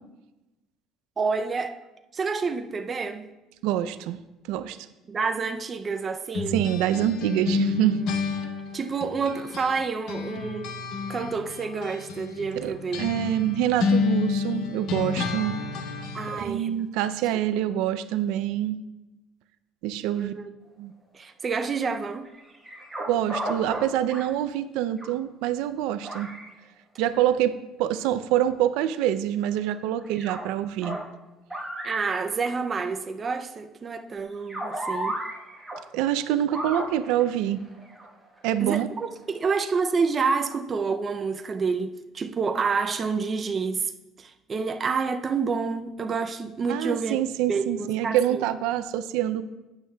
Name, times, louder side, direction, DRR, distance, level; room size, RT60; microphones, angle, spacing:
voice 1, 1.2-1.8 2.1-3.3 5.1-6.6 8.7-10.7 11.1-13.0 16.1-16.8 20.2-20.5 21.1-22.3 31.8-35.2 38.6-43.9 44.2-47.2 47.5-48.4, right 5 dB, 20° right, 0.4 m, -28 dB
voice 2, 3.6-4.8 6.5-8.0 12.6-12.7 13.0-15.5 16.3-18.8 19.8-20.3 20.8-20.9 23.1-26.3 27.0-31.0 35.9-37.6 38.4-38.9 46.7-49.4, right 11 dB, 85° right, 0.4 m, -26 dB
sound 1, 6.3-9.8 10.1-16.5, left 5 dB, 60° left, 0.7 m, -30 dB
sound 2, 22.2-23.0 23.3-23.8 24.1-24.2 25.0-25.1 26.0-26.5 29.4-29.5 30.0-30.4 30.8-31.0 31.5-32.2 34.2-35.8 36.5-38.5 39.2-39.3 39.7-39.8, right 1 dB, ahead, 1.1 m, -34 dB
12.0 x 8.2 x 2.2 m
cardioid pair, 175°, 0 cm